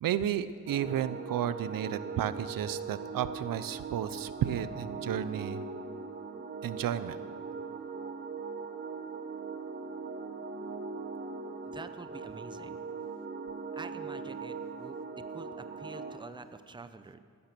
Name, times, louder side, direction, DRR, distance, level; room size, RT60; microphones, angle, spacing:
voice 1, 0.0-5.6 6.6-7.2, right 10 dB, 90° right, 14 dB, 0.7 m, -32 dB
sound 1, 0.7-16.2, right 4 dB, 30° right, 1.0 m, -40 dB
voice 2, 11.6-12.8 13.7-17.2, right 3 dB, 15° right, 11 dB, 0.6 m, -47 dB
17.5 x 11.0 x 6.1 m, 2.1 s
cardioid pair, 110°, 33 cm